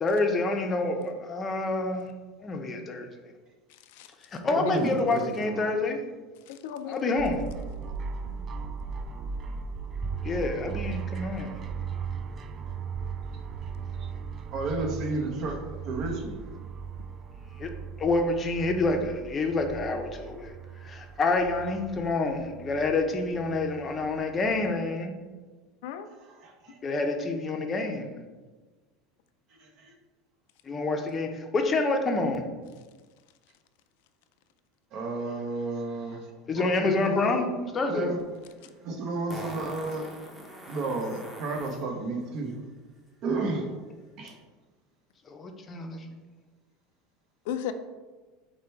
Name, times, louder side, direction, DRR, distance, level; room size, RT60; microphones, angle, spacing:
voice 1, 0.0-2.1 2.4-3.1 4.3-6.0 6.9-7.4 10.2-11.5 17.6-17.7 18.0-20.5 20.8-25.1 26.8-28.2 30.7-32.4 36.5-38.1 45.3-46.0, left 3 dB, 25° left, 4 dB, 0.6 m, -28 dB
voice 2, 3.7-4.1 4.4-4.9 6.5-7.2 8.2-8.4 25.8-26.1 47.5-47.7, left 9 dB, 75° left, 9 dB, 0.3 m, -36 dB
voice 3, 4.5-5.6 14.0-14.1 14.5-16.4 26.4-26.8 29.6-29.9 34.9-36.2 36.5-37.4 37.9-38.2 38.8-40.1 40.7-42.5 43.2-43.6 44.2-44.3, right 3 dB, 55° right, 2 dB, 0.9 m, -32 dB
sound 1, 7.2-24.7, right 5 dB, 35° right, 0.3 m, -38 dB
Fart, 38.2-38.3 39.3-41.8 44.3-44.4, equal, 5° right, 0.8 m, -42 dB
4.9 x 2.2 x 4.4 m, 1.3 s
supercardioid pair, 120°, 0 cm